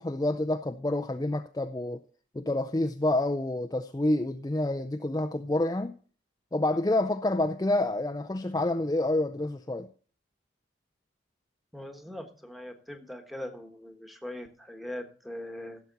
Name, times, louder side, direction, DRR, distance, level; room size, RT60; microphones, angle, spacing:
voice 1, 0.0-2.0 2.3-6.0 6.5-9.9, left 1 dB, 20° left, 0.4 m, -28 dB
voice 2, 11.7-15.8, left 1 dB, ahead, 1.3 m, -41 dB
16.0 x 7.2 x 4.0 m
head